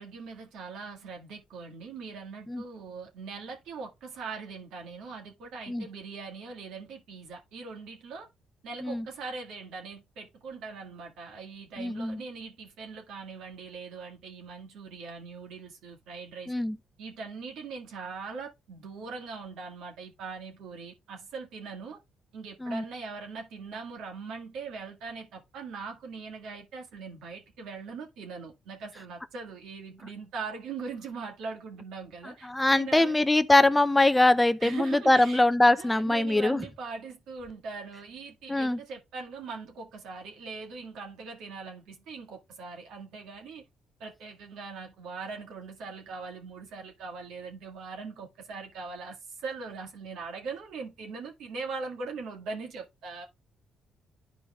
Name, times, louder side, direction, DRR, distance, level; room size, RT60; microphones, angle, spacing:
voice 1, 0.0-8.3 8.6-16.5 17.0-22.0 22.3-33.1 34.6-35.4 35.8-43.6 44.0-53.2, right 4 dB, 85° right, 1.8 m, -41 dB
voice 2, 11.8-12.2 16.5-16.8 22.6-22.8 32.4-36.6 38.5-38.8, left 2 dB, 10° left, 0.5 m, -23 dB
11.5 x 4.7 x 2.4 m
cardioid pair, 90°, 0 cm